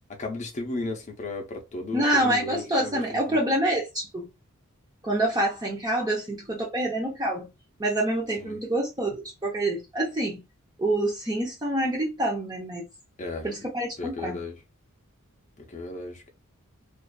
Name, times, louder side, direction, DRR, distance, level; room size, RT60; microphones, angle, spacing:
voice 1, 0.2-3.4 8.4-8.6 13.2-13.5 14.0-14.6 15.7-16.3, left 3 dB, 35° left, 0.6 m, -35 dB
voice 2, 1.9-4.3 5.0-7.5 7.8-10.4 10.8-12.9 13.4-14.4, right 1 dB, 20° right, 0.6 m, -27 dB
2.5 x 2.4 x 2.2 m
head